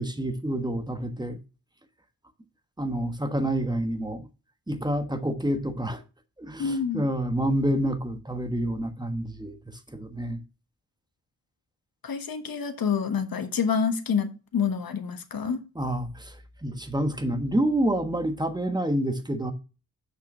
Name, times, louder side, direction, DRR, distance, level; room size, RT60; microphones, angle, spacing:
voice 1, 0.0-1.4 2.8-4.3 4.7-6.0 6.4-9.6 9.9-10.4 15.7-16.3 16.6-19.5, right 1 dB, 10° right, 1.3 m, -28 dB
voice 2, 6.6-7.0 12.0-15.6, left 6 dB, 75° left, 1.3 m, -27 dB
6.7 x 5.8 x 6.0 m
wide cardioid pair, 110°, 36 cm